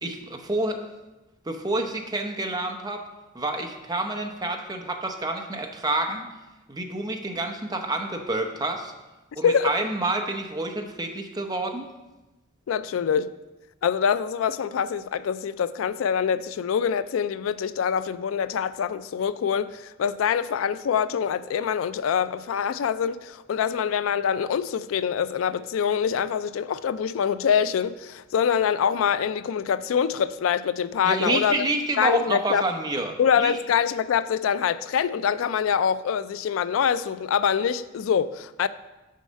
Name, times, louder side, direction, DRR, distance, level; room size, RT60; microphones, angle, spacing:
voice 1, 0.0-0.8 1.5-3.0 3.3-6.3 6.7-8.9 9.4-11.9 31.0-33.1 33.4-33.5, right 2 dB, 20° right, 0.8 m, -28 dB
voice 2, 12.7-13.3 13.8-31.6 32.0-32.6 33.2-38.7, left 7 dB, 85° left, 0.3 m, -25 dB
6.5 x 5.5 x 6.3 m
head